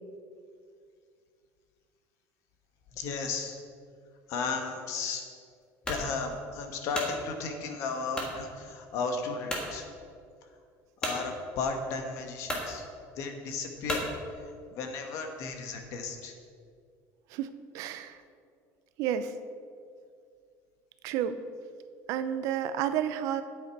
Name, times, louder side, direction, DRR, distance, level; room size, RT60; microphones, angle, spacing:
voice 1, 2.9-3.6 4.3-5.2 5.9-9.8 11.0-12.9 13.2-14.1 14.7-16.3, left 4 dB, 50° left, 5 dB, 1.2 m, -34 dB
sound 1, 5.8-6.1 6.6-7.2 8.1-8.4 8.9-9.0 9.5-9.7 11.0-11.2 12.0-12.1 12.4-12.7 13.9-14.1, left 1 dB, 15° left, 1.5 m, -33 dB
voice 2, 17.3-18.2 19.0-19.3 21.0-21.4 22.1-23.4, right 9 dB, 55° right, 11 dB, 0.5 m, -31 dB
10.0 x 8.3 x 4.7 m, 2.2 s
cardioid pair, 175°, 7 cm